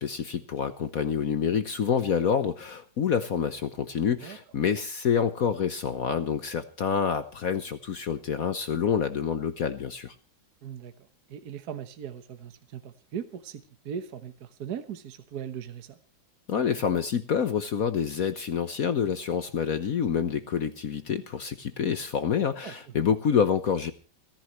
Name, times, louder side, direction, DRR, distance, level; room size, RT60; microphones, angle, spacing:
voice 1, 0.0-10.1 16.5-23.9, left 7 dB, 55° left, 11 dB, 1.1 m, -27 dB
voice 2, 10.6-10.9 11.3-16.0 22.6-22.7, right 8 dB, 55° right, 9 dB, 1.5 m, -39 dB
29.5 x 10.5 x 3.1 m, 0.33 s
omnidirectional pair, 2.2 m